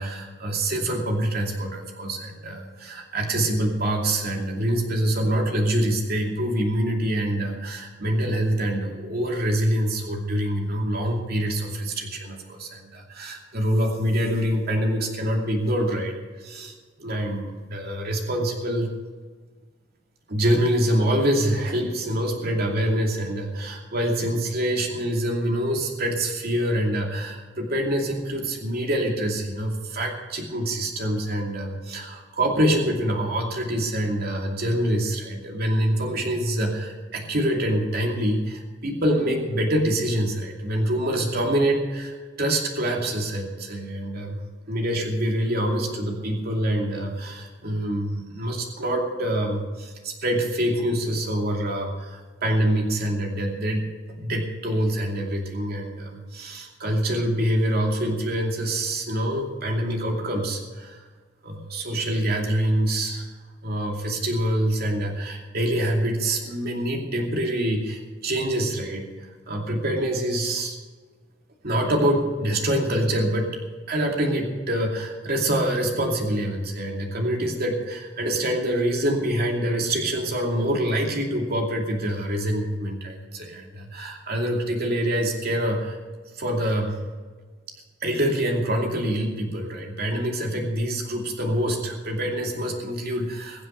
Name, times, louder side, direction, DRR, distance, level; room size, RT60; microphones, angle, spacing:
voice 1, 0.0-16.7 17.0-18.9 20.3-53.9 54.1-61.0 61.4-63.3 63.6-70.7 71.6-73.5 73.9-86.0 86.3-87.0 88.0-93.7, right 1 dB, 55° right, 0 dB, 2.7 m, -25 dB
22.5 x 7.9 x 6.5 m, 1.4 s
head